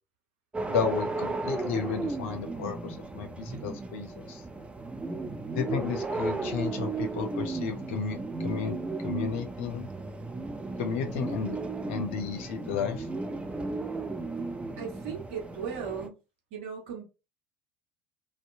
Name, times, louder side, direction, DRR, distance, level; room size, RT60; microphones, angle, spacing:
sound 1, 0.5-16.1, right 3 dB, 15° right, 0.5 m, -35 dB
voice 1, 0.7-4.4 5.5-9.9 10.8-11.6 11.9-13.1, left 6 dB, 70° left, 0.5 m, -33 dB
voice 2, 14.8-16.2 16.5-17.0, right 6 dB, 70° right, 1.0 m, -37 dB
2.6 x 2.2 x 2.5 m
figure-of-eight pair, 65°, 7 cm